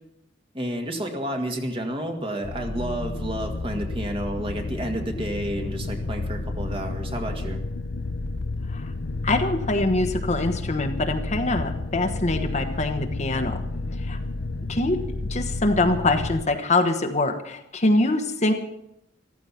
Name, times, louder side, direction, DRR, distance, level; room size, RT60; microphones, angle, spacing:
voice 1, 0.5-7.6, right 1 dB, 30° right, 3 dB, 2.0 m, -30 dB
sound 1, 2.4-16.4, left 2 dB, 65° left, 0.7 m, -31 dB
voice 2, 9.2-13.6 14.0-14.2 14.7-15.0 15.3-18.5, left 2 dB, 40° left, 6 dB, 1.2 m, -24 dB
14.5 x 13.5 x 5.8 m, 0.81 s
head